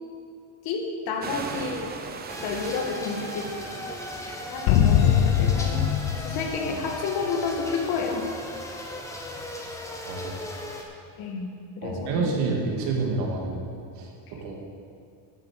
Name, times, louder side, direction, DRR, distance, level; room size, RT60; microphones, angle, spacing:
voice 1, 0.6-2.0 2.4-3.5 4.5-5.9 6.2-8.3 11.2-11.5 11.8-12.4, left 4 dB, 60° left, 3 dB, 1.7 m, -30 dB
sound 1, 1.2-6.6, right 4 dB, 25° right, 0.6 m, -40 dB
sound 2, 2.3-10.8, left 1 dB, 5° left, 0.9 m, -37 dB
sound 3, 4.7-7.4, left 9 dB, 80° left, 0.7 m, -22 dB
voice 2, 10.1-10.5 11.8-13.6 13.9-14.6, right 3 dB, 65° right, -1 dB, 2.5 m, -28 dB
12.0 x 7.1 x 6.4 m, 2.5 s
cardioid pair, 170°, 42 cm